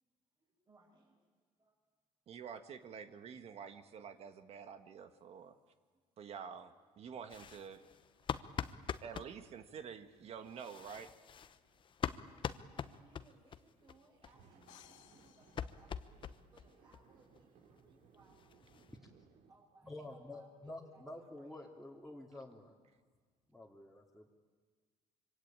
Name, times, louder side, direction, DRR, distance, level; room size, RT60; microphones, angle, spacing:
voice 1, 0.4-1.3 1.6-1.8 5.3-6.2 7.7-9.0 11.7-11.8 12.2-19.1 19.5-21.8, right 2 dB, 35° right, -3 dB, 6.0 m, -68 dB
voice 2, 2.3-5.6 6.2-7.8 9.0-11.1, right 7 dB, 50° right, 9 dB, 1.6 m, -48 dB
sound 1, 7.3-9.3 10.5-13.6 13.9-14.0 14.2-14.3 14.6-16.7 16.9-17.0 17.4-17.5 17.8-17.9 18.1-19.0, left 8 dB, 40° left, 1.0 m, -43 dB
sound 2, 7.9-19.5, right 6 dB, 70° right, 2.8 m, -68 dB
sound 3, 14.7-16.6, left 12 dB, 75° left, 1.4 m, -63 dB
voice 3, 19.8-22.7 23.5-24.3, left 2 dB, ahead, -4 dB, 2.6 m, -49 dB
25.5 x 24.5 x 9.0 m, 1.5 s
cardioid pair, 115°, 13 cm